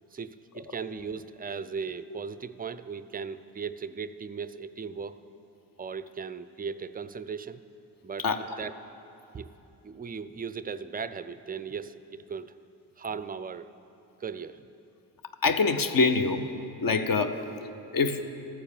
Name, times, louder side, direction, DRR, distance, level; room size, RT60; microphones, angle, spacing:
voice 1, 0.1-5.2 5.8-7.6 8.0-8.7 9.3-9.5 9.8-12.5 13.0-13.7 14.2-14.7, right 6 dB, 20° right, 13 dB, 0.3 m, -37 dB
voice 2, 15.4-16.4 16.8-17.4 17.9-18.2, left 4 dB, 45° left, 8 dB, 0.8 m, -24 dB
14.0 x 4.6 x 7.2 m, 2.9 s
supercardioid pair, 45°, 48 cm